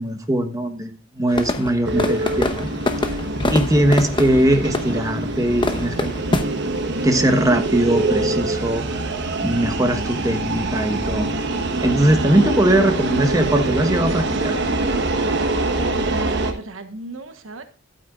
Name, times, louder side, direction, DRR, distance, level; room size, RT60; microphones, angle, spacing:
voice 1, 0.0-2.7 3.0-3.1 3.5-6.1 7.0-9.0 9.4-11.3 11.8-14.6, right 1 dB, 15° right, 6 dB, 1.1 m, -20 dB
sound 1, 1.3-6.4, left 2 dB, 25° left, 0.9 m, -25 dB
sound 2, 1.8-16.5, right 2 dB, 60° right, 1.2 m, -24 dB
voice 2, 15.8-17.6, right 1 dB, 85° right, 8 dB, 1.2 m, -34 dB
12.0 x 8.7 x 2.4 m, 0.38 s
head